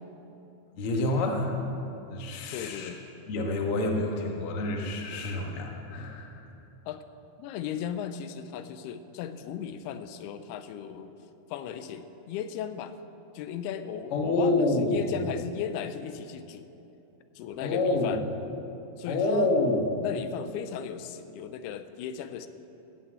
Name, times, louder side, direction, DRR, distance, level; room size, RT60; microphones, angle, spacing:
voice 1, 0.8-1.5 2.1-2.9 3.3-6.4 14.1-15.0 17.6-18.2 19.1-19.8, left 2 dB, 60° left, 1 dB, 1.5 m, -27 dB
voice 2, 2.5-3.0 6.9-7.0 7.4-11.1 11.5-12.9 13.3-16.7 17.4-18.2 19.0-19.5 20.0-22.5, left 9 dB, 90° left, 10 dB, 2.6 m, -36 dB
17.0 x 6.4 x 8.3 m, 2.9 s
omnidirectional pair, 4.5 m